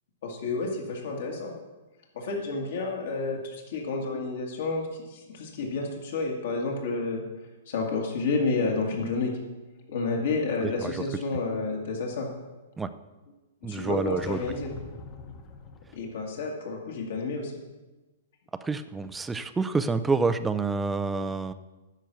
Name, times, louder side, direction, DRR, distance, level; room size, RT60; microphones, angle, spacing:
voice 1, 0.2-1.5 2.1-7.2 7.7-9.3 9.9-12.3 13.7-14.7 15.9-17.5, left 3 dB, 60° left, -1 dB, 2.0 m, -30 dB
voice 2, 10.6-11.0 12.8-12.9 13.6-14.4 18.6-21.5, right 4 dB, 5° right, 12 dB, 0.4 m, -28 dB
sound 1, 14.1-16.3, left 4 dB, 25° left, 0.9 m, -44 dB
10.5 x 6.7 x 6.1 m, 1.1 s
hypercardioid pair, 165°, 0 cm